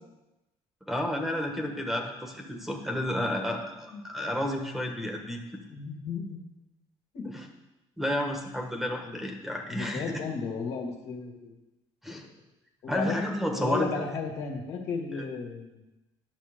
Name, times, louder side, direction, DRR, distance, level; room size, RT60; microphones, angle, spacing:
voice 1, 0.9-5.4 7.2-7.5 8.0-10.1 12.0-12.2 12.9-14.1 15.1-15.2, equal, ahead, 2 dB, 1.4 m, -31 dB
voice 2, 5.7-6.4 7.1-7.4 9.7-11.5 12.8-13.2 13.5-15.8, left 5 dB, 65° left, 1 dB, 2.0 m, -34 dB
10.0 x 6.4 x 5.1 m, 0.99 s
cardioid pair, 100°, 11 cm